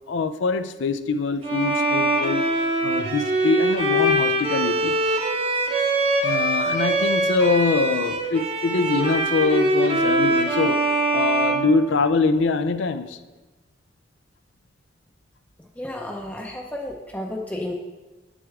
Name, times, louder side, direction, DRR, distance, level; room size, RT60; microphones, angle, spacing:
voice 1, 0.1-2.5 2.8-5.2 6.2-10.8 11.1-13.2, left 4 dB, 85° left, 11 dB, 0.4 m, -24 dB
Bowed string instrument, 1.4-12.4, right 1 dB, 30° right, 0.7 m, -23 dB
voice 2, 15.8-17.7, left 1 dB, 10° left, 1 dB, 0.5 m, -32 dB
8.1 x 6.2 x 3.5 m, 1.1 s
head